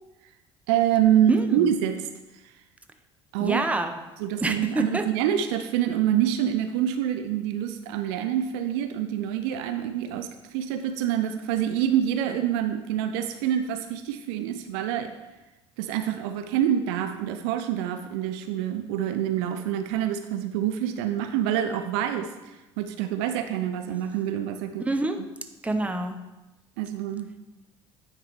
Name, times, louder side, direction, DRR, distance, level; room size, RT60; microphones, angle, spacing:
voice 1, 0.7-2.0 3.3-3.6 4.2-15.1 15.8-24.9 26.8-27.3, right 10 dB, 65° right, 8 dB, 0.5 m, -26 dB
voice 2, 1.3-1.7 3.4-4.0 4.4-5.1 24.8-25.2 25.6-26.2, right 2 dB, 10° right, 6 dB, 0.7 m, -26 dB
9.5 x 3.3 x 4.5 m, 1.0 s
figure-of-eight pair, 60°, 15 cm